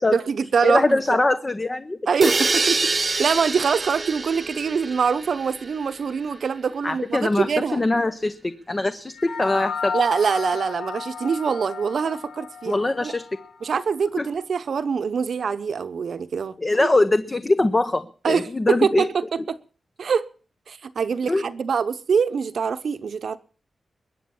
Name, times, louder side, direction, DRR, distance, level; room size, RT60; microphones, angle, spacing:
voice 1, 0.1-1.2 2.1-7.8 9.9-13.1 13.6-16.9 18.2-19.6 20.0-20.3 20.7-23.4, right 6 dB, 65° right, 0.9 m, -24 dB
voice 2, 0.6-2.0 6.8-10.1 12.7-13.2 14.2-14.3 16.6-19.1 21.3-21.4, left 2 dB, 20° left, 0.7 m, -22 dB
sound 1, 2.2-6.0, right 3 dB, 30° right, 1.0 m, -26 dB
sound 2, 9.1-13.8, left 5 dB, 75° left, 1.8 m, -33 dB
21.5 x 8.6 x 7.2 m
wide cardioid pair, 150°, 0 cm